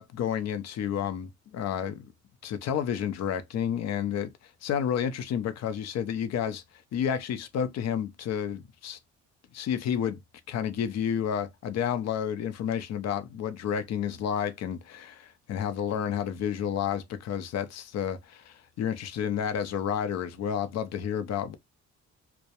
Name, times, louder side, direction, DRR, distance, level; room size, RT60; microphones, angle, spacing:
voice 1, 0.0-2.1 2.4-4.3 4.6-6.6 6.9-9.0 9.5-10.2 10.5-21.6, left 8 dB, 60° left, 0.5 m, -30 dB
2.2 x 2.1 x 2.8 m
cardioid pair, 90°, 30 cm